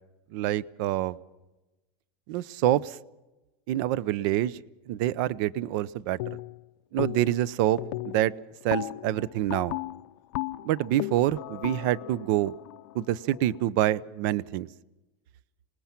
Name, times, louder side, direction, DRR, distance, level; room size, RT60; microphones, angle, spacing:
voice 1, 0.3-1.2 2.3-3.0 3.7-4.6 4.9-6.2 6.9-8.3 8.6-9.8 10.6-12.5 12.9-14.7, right 13 dB, 55° right, 21 dB, 0.6 m, -26 dB
sound 1, 6.2-6.6 7.0-7.5 7.8-13.6, left 18 dB, 65° left, 0.6 m, -36 dB
26.5 x 19.5 x 5.9 m, 1.1 s
supercardioid pair, 155°, 13 cm